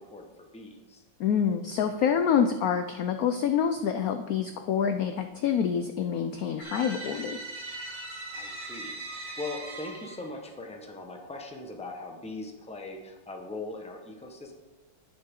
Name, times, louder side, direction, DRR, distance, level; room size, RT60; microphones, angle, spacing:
voice 1, 0.0-1.0 8.3-14.5, left 2 dB, 5° left, 2 dB, 0.8 m, -40 dB
voice 2, 1.2-7.4, left 7 dB, 80° left, 8 dB, 0.8 m, -27 dB
sound 1, 6.6-10.4, right 2 dB, 60° right, 3.0 m, -40 dB
10.5 x 10.0 x 3.8 m, 1.2 s
omnidirectional pair, 2.2 m